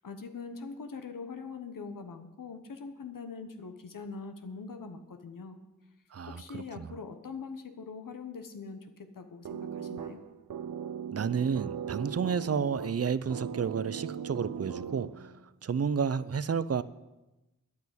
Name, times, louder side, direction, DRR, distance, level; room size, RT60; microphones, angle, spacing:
voice 1, 0.0-5.6 6.3-10.2, left 4 dB, 75° left, 7 dB, 1.2 m, -43 dB
voice 2, 6.1-7.0 11.1-15.3 15.6-16.8, right 6 dB, 45° right, 16 dB, 0.6 m, -31 dB
sound 1, 9.5-15.4, right 8 dB, 85° right, 0.7 m, -39 dB
9.8 x 8.5 x 8.4 m, 1.0 s
cardioid pair, 50°, 33 cm